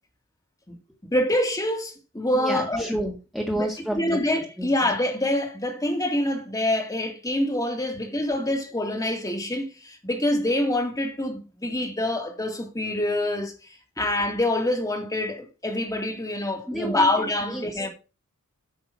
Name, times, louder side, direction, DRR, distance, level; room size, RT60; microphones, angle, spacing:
voice 1, 1.1-2.9 3.5-13.5 14.0-17.9, left 1 dB, 15° left, 2.2 m, -26 dB
voice 2, 2.3-4.2 4.6-4.7 14.0-14.1 16.7-17.1 17.5-17.7, right 1 dB, ahead, 1.8 m, -29 dB
8.9 x 6.2 x 6.0 m
head